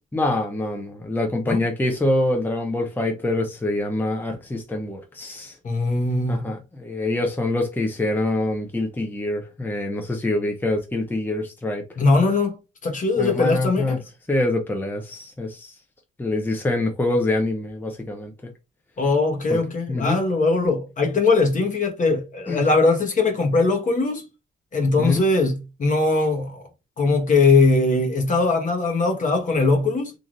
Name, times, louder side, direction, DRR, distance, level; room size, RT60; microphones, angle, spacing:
voice 1, 0.1-5.6 6.3-11.8 13.2-14.0 14.3-15.7 16.2-18.3 19.5-19.6 19.9-20.2 22.5-22.7 25.0-25.1, left 2 dB, 10° left, 0.6 m, -25 dB
voice 2, 5.6-6.5 12.0-12.6 12.8-14.0 19.0-24.2 24.7-26.6 27.0-30.1, left 3 dB, 40° left, 1.0 m, -20 dB
3.2 x 2.5 x 2.5 m
cardioid pair, 90°, 20 cm